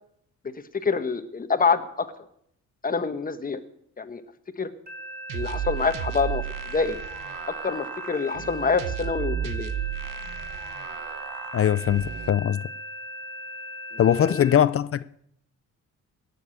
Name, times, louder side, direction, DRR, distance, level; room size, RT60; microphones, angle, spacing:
voice 1, 0.8-2.1 2.8-3.6 4.0-4.2 4.6-4.7 5.3-6.4 6.7-7.0 7.6-9.7 14.2-14.5, left 5 dB, 25° left, 1.2 m, -26 dB
sound 1, 4.9-14.6, right 1 dB, 30° right, 4.0 m, -39 dB
sound 2, 5.3-12.3, right 10 dB, 85° right, 1.1 m, -34 dB
voice 2, 11.5-12.6 14.0-15.1, left 10 dB, 45° left, 0.5 m, -21 dB
17.5 x 7.2 x 8.4 m
cardioid pair, 115°, 32 cm